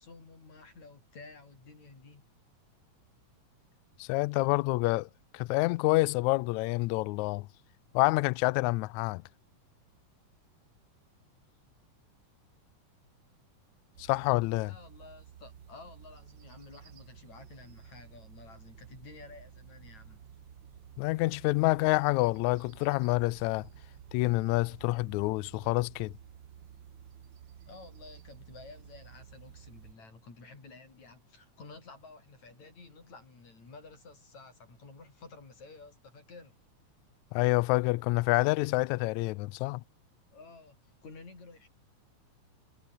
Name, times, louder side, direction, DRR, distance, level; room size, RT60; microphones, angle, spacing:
voice 1, 0.0-2.3 14.6-20.2 27.6-36.6 40.3-41.7, left 3 dB, 55° left, 8.0 m, -52 dB
voice 2, 4.0-5.1 5.3-7.5 7.9-9.2 14.0-14.7 21.0-23.7 24.1-26.1 37.3-39.8, left 22 dB, 85° left, 1.6 m, -27 dB
sound 1, 13.9-29.9, right 9 dB, 55° right, 1.3 m, -53 dB
omnidirectional pair, 3.8 m